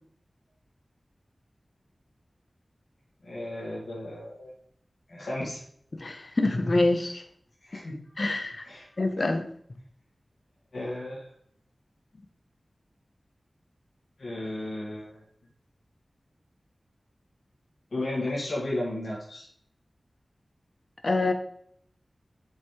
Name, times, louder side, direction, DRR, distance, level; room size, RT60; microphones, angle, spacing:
voice 1, 3.2-4.5 5.1-5.6 7.6-7.9 8.6-8.9 10.7-11.3 14.2-15.2 17.9-19.5, left 1 dB, 80° left, -5 dB, 2.3 m, -34 dB
voice 2, 6.0-7.2 8.2-8.6 9.0-9.4 21.0-21.3, left 2 dB, 55° left, 6 dB, 1.1 m, -25 dB
7.6 x 5.8 x 3.4 m, 0.64 s
wide cardioid pair, 50°, 0 cm